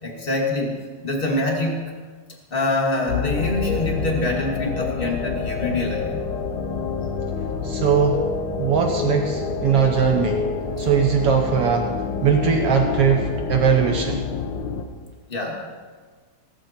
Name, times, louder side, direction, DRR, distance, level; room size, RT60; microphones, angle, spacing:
voice 1, 0.0-0.8 1.0-1.8 2.5-6.1 15.3-15.6, left 2 dB, 20° left, 0 dB, 1.5 m, -25 dB
sound 1, 3.1-14.8, left 5 dB, 65° left, 2.4 m, -27 dB
voice 2, 7.6-8.2 8.6-10.5 10.8-11.9 12.2-14.2, right 7 dB, 75° right, 3 dB, 1.3 m, -20 dB
17.5 x 14.5 x 4.4 m, 1.4 s
omnidirectional pair, 4.2 m